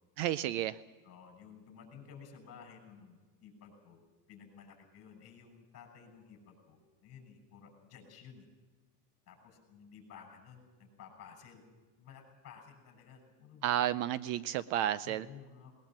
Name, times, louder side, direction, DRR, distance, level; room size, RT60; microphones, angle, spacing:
voice 1, 0.2-0.8 13.6-15.3, right 12 dB, 50° right, 16 dB, 0.6 m, -32 dB
voice 2, 1.0-4.0 4.3-8.5 9.3-11.6 12.0-13.7 15.0-15.8, left 7 dB, 30° left, 5 dB, 6.5 m, -54 dB
20.5 x 19.5 x 7.5 m, 1.4 s
supercardioid pair, 145°, 46 cm